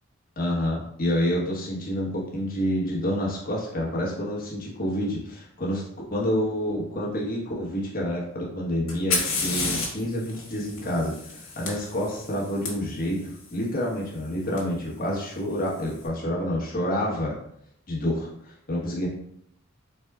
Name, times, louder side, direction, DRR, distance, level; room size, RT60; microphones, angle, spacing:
voice 1, 0.4-5.8 6.1-17.4 17.9-19.1, equal, 40° left, -4 dB, 1.2 m, -28 dB
Fire, 8.9-12.7 14.6-14.7 15.5-15.9, left 3 dB, 70° left, 1.5 m, -31 dB
4.4 x 4.0 x 2.4 m, 0.72 s
head